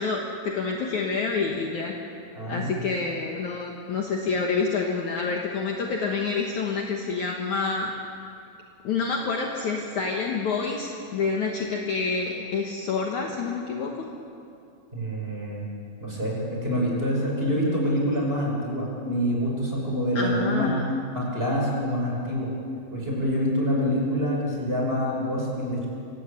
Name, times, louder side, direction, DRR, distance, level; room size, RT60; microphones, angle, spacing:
voice 1, 0.0-2.0 2.5-7.9 8.8-14.1 20.2-20.9, left 4 dB, 60° left, 0 dB, 2.6 m, -28 dB
voice 2, 2.3-2.7 14.9-15.7 16.0-20.8 21.1-22.5 22.9-25.9, equal, 15° right, -3 dB, 6.0 m, -26 dB
26.5 x 17.5 x 8.5 m, 2.6 s
omnidirectional pair, 4.4 m